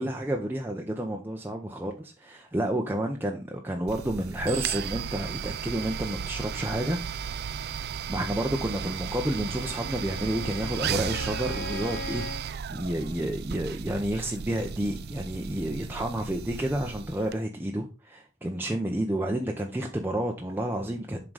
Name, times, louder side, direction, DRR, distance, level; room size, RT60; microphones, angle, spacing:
voice 1, 0.0-7.3 8.1-21.2, right 1 dB, 10° right, 1 dB, 0.7 m, -30 dB
sound 1, 3.9-17.4, right 7 dB, 55° right, 0.4 m, -35 dB
Bowed string instrument, 9.3-12.5, left 5 dB, 55° left, 1.0 m, -41 dB
7.4 x 3.8 x 4.8 m, 0.31 s
head